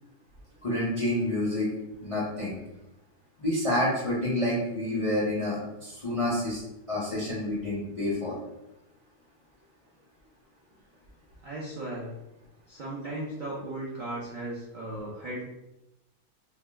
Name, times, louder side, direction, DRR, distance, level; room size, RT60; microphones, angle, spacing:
voice 1, 0.6-1.7 2.0-2.6 3.4-6.6 6.9-8.4, left 1 dB, 60° left, -7 dB, 0.3 m, -28 dB
voice 2, 11.4-12.1 12.7-15.4, right 1 dB, 85° right, -5 dB, 0.4 m, -36 dB
2.7 x 2.2 x 3.2 m, 0.93 s
omnidirectional pair, 1.6 m